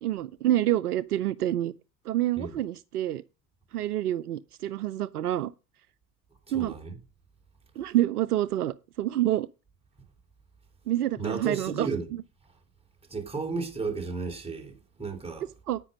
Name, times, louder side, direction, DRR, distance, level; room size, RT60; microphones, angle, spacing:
voice 1, 0.0-1.7 2.1-3.2 3.7-5.5 6.5-6.7 7.8-9.5 10.9-11.9 15.7-15.8, right 13 dB, 65° right, 0.6 m, -27 dB
voice 2, 6.5-7.0 11.2-12.1 13.1-15.5, right 4 dB, 10° right, 3.1 m, -33 dB
9.9 x 9.0 x 5.3 m
figure-of-eight pair, 75°, 49 cm